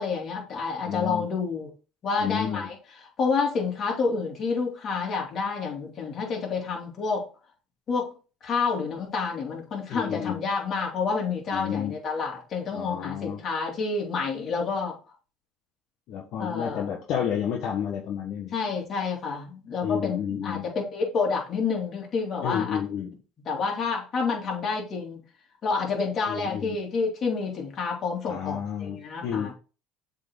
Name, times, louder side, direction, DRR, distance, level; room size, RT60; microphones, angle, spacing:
voice 1, 0.0-1.7 2.0-7.3 7.9-8.1 8.4-14.9 16.4-17.0 18.5-22.8 23.4-25.2 25.6-29.5, left 5 dB, 45° left, 0 dB, 2.8 m, -29 dB
voice 2, 0.8-1.3 2.2-2.7 9.9-10.4 11.5-11.9 12.7-13.4 16.1-18.5 19.8-20.6 22.4-23.1 26.3-26.8 28.3-29.5, left 8 dB, 60° left, 0 dB, 1.3 m, -31 dB
7.4 x 4.0 x 3.8 m, 0.34 s
supercardioid pair, 110°, 0 cm